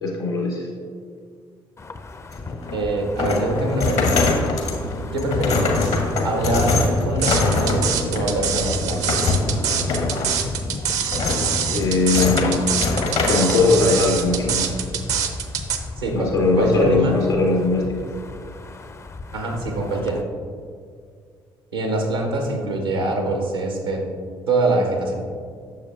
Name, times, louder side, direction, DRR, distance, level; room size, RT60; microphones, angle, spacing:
voice 1, 0.0-0.7 11.7-12.7 13.3-14.8 16.1-18.1, left 3 dB, 85° left, -1 dB, 1.0 m, -20 dB
Wind, 1.8-20.2, left 3 dB, 20° left, 0.4 m, -35 dB
sound 1, 2.3-13.7, left 3 dB, 60° left, 0.9 m, -24 dB
voice 2, 2.7-4.3 5.1-6.0 6.2-6.7 7.0-9.2 16.0-17.1 19.3-20.2 21.7-24.0 24.5-25.2, right 2 dB, 90° right, 1 dB, 0.8 m, -24 dB
sound 2, 7.2-15.8, right 8 dB, 65° right, 0.6 m, -25 dB
7.9 x 6.5 x 2.4 m, 2.1 s
figure-of-eight pair, 45°, 12 cm